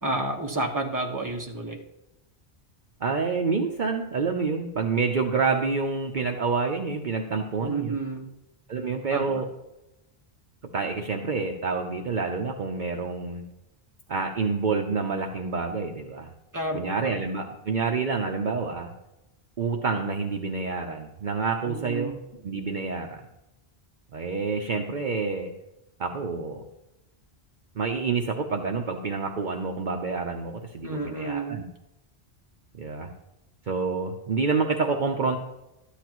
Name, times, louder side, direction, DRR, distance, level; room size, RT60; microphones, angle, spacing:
voice 1, 0.0-1.8 7.6-8.3 9.1-9.4 16.5-17.2 21.6-22.1 30.8-31.6, right 2 dB, 20° right, 0 dB, 1.3 m, -30 dB
voice 2, 3.0-8.0 8.7-9.5 10.7-13.5 14.1-16.3 16.7-18.9 19.6-22.2 22.4-23.2 24.1-25.5 26.0-26.6 27.8-31.6 32.7-33.1 33.7-35.4, right 4 dB, 50° right, 2 dB, 0.9 m, -28 dB
13.0 x 10.0 x 3.0 m, 0.93 s
omnidirectional pair, 1.1 m